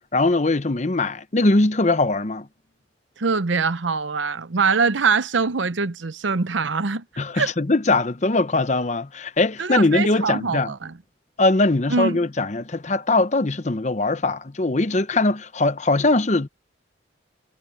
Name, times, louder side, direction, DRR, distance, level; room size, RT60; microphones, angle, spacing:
voice 1, 0.1-2.5 7.2-10.7 11.4-16.5, left 2 dB, 35° left, 0.8 m, -21 dB
voice 2, 3.2-7.0 7.3-7.5 9.6-11.0 11.9-12.2, right 4 dB, 75° right, 0.8 m, -23 dB
head